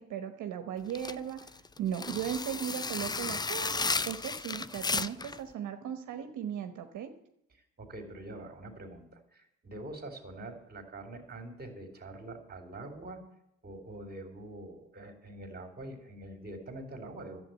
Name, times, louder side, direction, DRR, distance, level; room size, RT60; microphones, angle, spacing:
voice 1, 0.0-1.5 1.8-7.1, right 9 dB, 80° right, 7 dB, 1.1 m, -37 dB
sound 1, 0.9-5.4, left 4 dB, 15° left, 0.4 m, -34 dB
voice 2, 7.5-13.2 13.6-17.4, right 2 dB, 30° right, 6 dB, 3.0 m, -45 dB
11.0 x 7.9 x 9.0 m, 0.78 s
cardioid pair, 90°, 30 cm